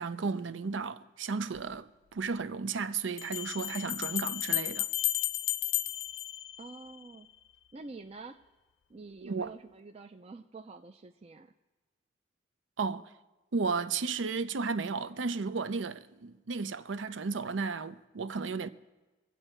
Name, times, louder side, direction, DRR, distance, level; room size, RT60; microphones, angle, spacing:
voice 1, 0.0-4.9 9.2-9.5 12.8-13.1 13.5-18.7, right 4 dB, 80° right, 0.6 m, -34 dB
sound 1, 1.6-1.7 3.2-7.1, left 14 dB, 90° left, 0.4 m, -33 dB
voice 2, 6.6-7.3 7.7-8.4 8.9-11.5, right 3 dB, 30° right, 0.4 m, -47 dB
23.5 x 8.0 x 4.4 m
head